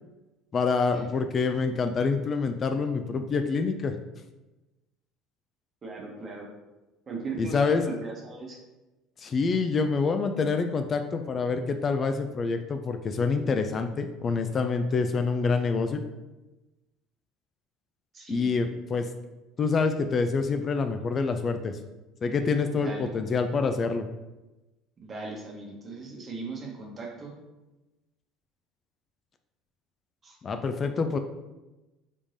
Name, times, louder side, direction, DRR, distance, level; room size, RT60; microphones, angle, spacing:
voice 1, 0.5-3.9 7.4-7.8 9.2-16.0 18.3-19.1 19.6-21.8 22.2-24.0 30.4-31.2, left 4 dB, 40° left, 7 dB, 0.3 m, -26 dB
voice 2, 5.8-6.5 7.1-8.6 18.1-18.5 22.7-23.1 25.0-27.3 30.2-30.4, right 3 dB, 35° right, 0 dB, 1.0 m, -38 dB
3.5 x 3.2 x 2.7 m, 1.1 s
hypercardioid pair, 70°, 0 cm